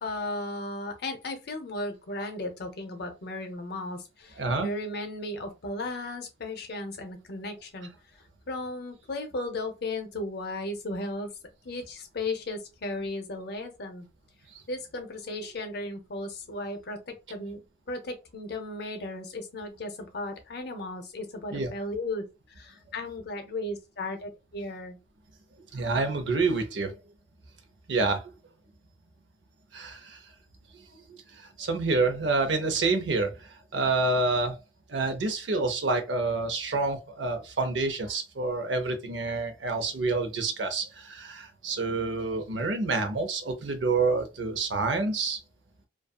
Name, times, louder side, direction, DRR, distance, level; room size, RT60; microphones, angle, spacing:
voice 1, 0.0-7.9 8.5-11.3 11.6-14.1 14.7-22.2 22.6-25.0, left 2 dB, 60° left, 0.6 m, -35 dB
voice 2, 4.4-4.7 14.5-14.6 21.5-21.7 25.7-26.9 27.9-28.3 29.7-30.2 31.1-34.6 34.9-45.4, right 3 dB, 75° right, 0.6 m, -28 dB
2.6 x 2.3 x 2.3 m
head